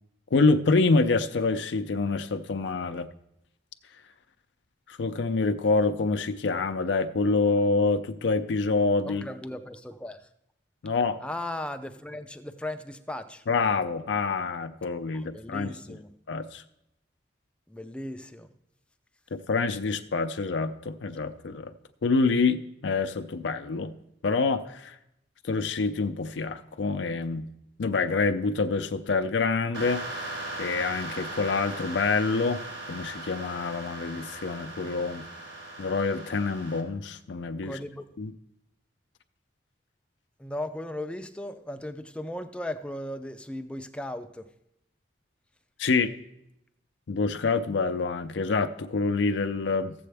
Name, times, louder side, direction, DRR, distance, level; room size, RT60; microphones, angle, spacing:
voice 1, 0.3-3.1 4.9-9.3 10.8-11.2 13.5-15.7 16.3-16.6 19.3-21.7 22.0-23.9 24.2-25.0 25.4-27.5 27.8-32.6 32.9-35.3 35.8-37.8 38.2-38.3 45.8-46.1 47.1-49.9, left 4 dB, 75° left, 9 dB, 0.5 m, -26 dB
voice 2, 9.0-10.3 11.2-13.4 15.1-16.1 17.7-18.5 37.6-38.1 40.4-44.5, left 1 dB, 5° left, 8 dB, 0.4 m, -37 dB
sound 1, 29.7-36.8, right 2 dB, 80° right, 1.6 m, -38 dB
14.0 x 7.6 x 3.4 m, 0.81 s
head